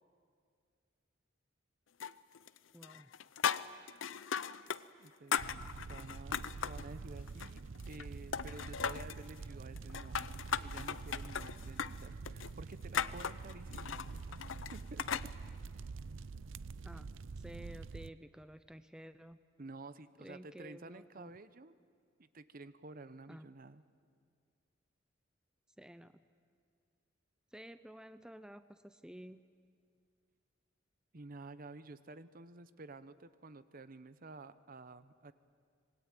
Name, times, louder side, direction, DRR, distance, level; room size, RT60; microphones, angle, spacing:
sound 1, 2.0-2.6 2.8-4.8 5.1-6.9 7.3-8.1 8.3-9.2 9.8-15.3, left 7 dB, 85° left, 0.6 m, -38 dB
voice 1, 2.7-3.1 16.8-17.1 17.4-19.4 20.2-21.3 23.3-23.5 25.8-26.2 27.5-29.4, equal, 5° right, 11 dB, 0.6 m, -52 dB
voice 2, 5.0-7.6 7.9-10.2 10.6-14.4 14.7-15.1 19.6-21.7 22.2-23.8 31.1-35.3, right 2 dB, 50° right, 13 dB, 0.9 m, -51 dB
sound 2, 5.4-18.1, right 4 dB, 80° right, 0.5 m, -46 dB
26.0 x 21.0 x 9.0 m, 2.2 s
head